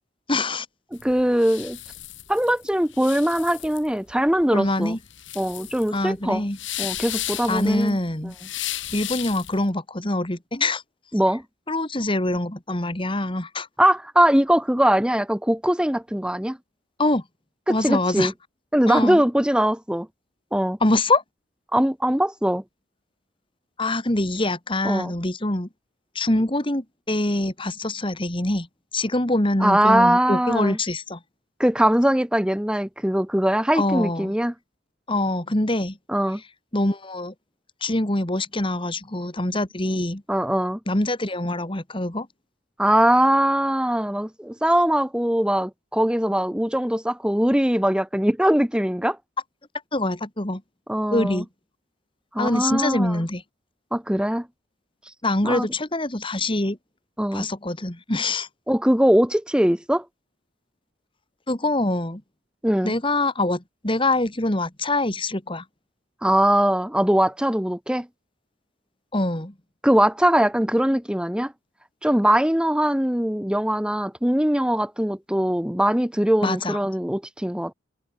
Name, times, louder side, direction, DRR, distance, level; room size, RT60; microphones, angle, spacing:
voice 1, 0.3-0.7 4.5-5.0 5.9-6.6 7.5-8.3 8.9-10.8 11.7-13.7 17.0-17.2 17.7-18.3 18.9-19.2 20.8-21.2 23.8-25.7 26.2-28.7 28.9-31.2 33.8-34.3 35.1-36.0 36.7-37.3 37.8-40.2 40.9-42.3 49.9-50.6 51.1-51.5 52.4-53.4 55.2-56.8 57.3-58.5 61.5-62.2 62.8-65.6 69.1-69.5 76.4-76.8, left 2 dB, 25° left, 1.9 m, -24 dB
sound 1, 0.9-9.6, left 13 dB, 60° left, 4.3 m, -34 dB
voice 2, 0.9-1.8 2.3-5.0 5.4-6.4 6.8-8.0 11.1-11.4 13.8-16.6 17.7-18.3 18.7-20.1 20.5-20.8 21.7-22.6 24.8-25.1 29.6-30.8 31.6-34.5 36.1-36.4 40.3-40.8 42.8-49.2 50.9-51.4 52.3-53.2 53.9-54.5 55.4-55.7 57.2-57.5 58.7-60.0 62.6-62.9 66.2-68.1 69.8-71.5 72.0-77.7, right 1 dB, 5° right, 0.9 m, -21 dB
head